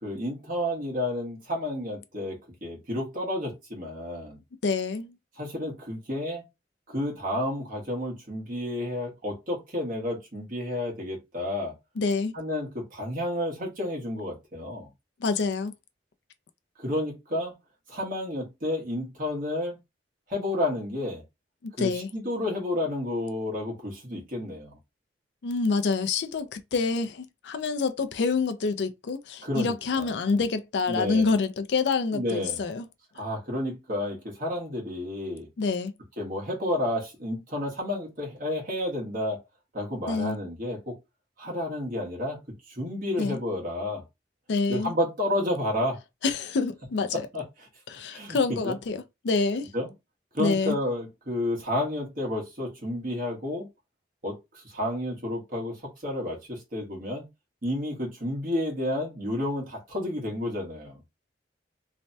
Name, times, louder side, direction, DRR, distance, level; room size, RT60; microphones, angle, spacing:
voice 1, 0.0-4.4 5.4-6.4 6.9-11.7 12.3-14.9 16.8-17.5 17.9-19.7 20.3-21.2 21.8-24.8 29.4-30.1 30.9-31.3 32.1-32.6 33.1-35.5 36.2-39.4 39.7-41.0 41.4-42.4 42.7-44.0 44.7-46.0 47.3-47.4 48.1-48.8 49.7-49.9 50.3-53.7 54.2-57.2 57.6-61.0, left 1 dB, 45° right, 1.3 m, -31 dB
voice 2, 4.6-5.2 12.0-12.3 15.2-15.7 21.6-22.1 25.4-32.9 35.6-35.9 40.1-40.4 43.2-43.4 44.5-44.9 46.2-47.3 47.9-49.7 50.4-50.8, left 4 dB, 65° left, 0.4 m, -27 dB
3.2 x 2.1 x 2.6 m
head